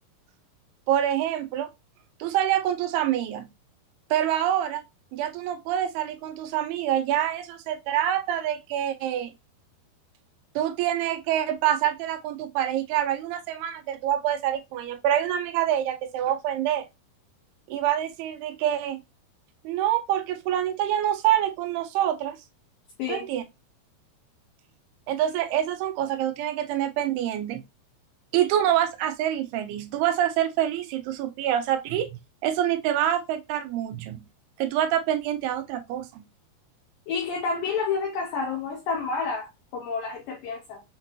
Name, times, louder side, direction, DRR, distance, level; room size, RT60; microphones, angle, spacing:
voice 1, 0.9-1.7 2.2-3.5 4.1-4.8 5.1-9.3 10.6-16.8 17.7-19.0 19.6-22.4 23.1-23.4 25.1-27.6 28.3-32.1 32.4-34.2 34.6-36.2, right 11 dB, 80° right, 2.5 m, -26 dB
voice 2, 37.1-40.8, left 5 dB, 75° left, 2.2 m, -29 dB
6.5 x 2.8 x 2.9 m
omnidirectional pair, 4.7 m